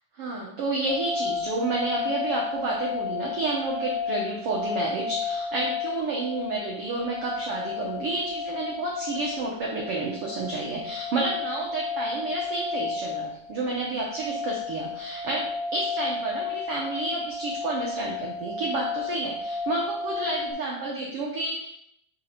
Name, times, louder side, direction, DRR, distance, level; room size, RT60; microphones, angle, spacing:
voice 1, 0.1-21.7, right 2 dB, 75° right, -3 dB, 1.3 m, -30 dB
sound 1, 0.9-20.5, left 4 dB, 10° right, 2.4 m, -33 dB
5.2 x 4.5 x 5.0 m, 0.73 s
omnidirectional pair, 4.0 m